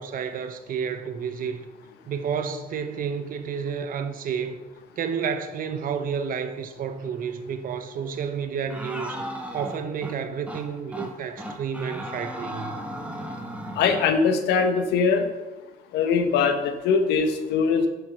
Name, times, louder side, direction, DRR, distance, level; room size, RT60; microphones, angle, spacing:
voice 1, 0.0-1.6 2.0-4.6 5.0-9.2 9.5-12.8, right 6 dB, 55° right, 1.2 m, -30 dB
sound 1, 8.7-10.1 10.5-10.6 10.9-11.1 11.4-14.2, right 1 dB, 5° right, 1.7 m, -35 dB
voice 2, 13.8-15.3 15.9-17.9, left 5 dB, 85° left, 1.3 m, -21 dB
10.5 x 7.1 x 6.0 m
cardioid pair, 110°, 17 cm